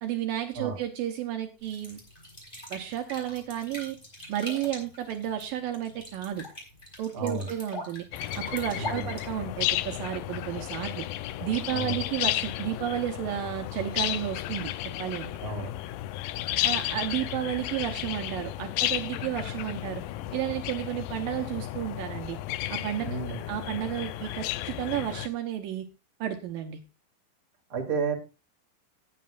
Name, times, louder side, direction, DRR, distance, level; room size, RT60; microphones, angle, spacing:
voice 1, 0.0-2.0 2.7-4.0 4.3-6.5 7.0-8.1 8.4-11.1 11.4-15.3 16.6-20.0 20.3-22.4 22.7-23.2 23.5-25.9 26.2-26.8, right 11 dB, 75° right, 5 dB, 2.6 m, -32 dB
sound 1, 1.6-9.8, left 1 dB, 15° left, 4.8 m, -43 dB
voice 2, 7.1-7.5 8.8-9.1 11.7-12.0 15.4-15.7 23.0-23.5 27.7-28.2, right 3 dB, 40° right, 2 dB, 3.1 m, -32 dB
sound 2, 8.1-25.3, left 15 dB, 80° left, 2.3 m, -33 dB
19.0 x 8.6 x 2.5 m, 0.28 s
omnidirectional pair, 4.2 m